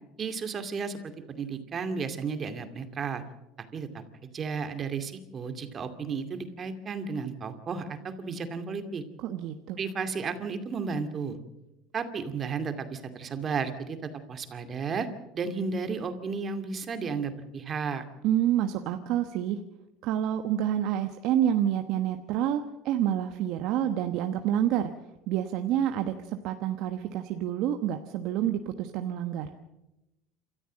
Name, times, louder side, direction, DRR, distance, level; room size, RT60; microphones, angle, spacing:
voice 1, 0.2-3.2 3.7-4.0 4.3-9.0 9.8-11.4 11.9-15.1 15.3-18.0, right 5 dB, 35° right, 8 dB, 2.4 m, -33 dB
voice 2, 9.2-9.8 18.2-19.6 20.0-24.9 25.3-29.5, right 10 dB, 65° right, 7 dB, 1.2 m, -28 dB
27.5 x 14.0 x 7.6 m, 0.95 s
supercardioid pair, 100°, 0 cm